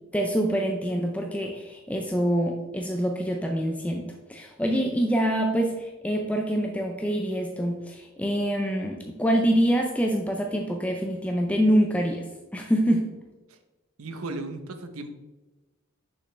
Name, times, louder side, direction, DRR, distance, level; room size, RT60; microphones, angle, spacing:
voice 1, 0.1-12.3 12.5-13.2, equal, 5° left, 2 dB, 0.4 m, -25 dB
voice 2, 14.0-15.1, right 2 dB, 85° right, 8 dB, 0.8 m, -36 dB
6.4 x 6.1 x 3.3 m, 1.1 s
head